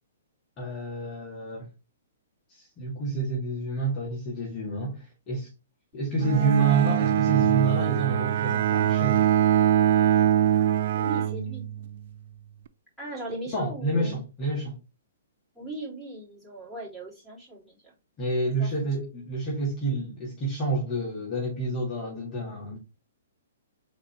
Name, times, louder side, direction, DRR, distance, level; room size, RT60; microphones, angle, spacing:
voice 1, 0.6-1.7 2.5-5.5 5.9-9.3 13.5-14.8 18.2-22.8, right 3 dB, 25° left, 1.7 m, -28 dB
Bowed string instrument, 6.2-12.0, right 11 dB, 55° right, 0.3 m, -23 dB
voice 2, 11.0-11.6 13.0-14.2 15.5-17.9 18.6-18.7, right 1 dB, 5° right, 3.1 m, -38 dB
4.1 x 4.0 x 3.2 m
figure-of-eight pair, 120°, 0 cm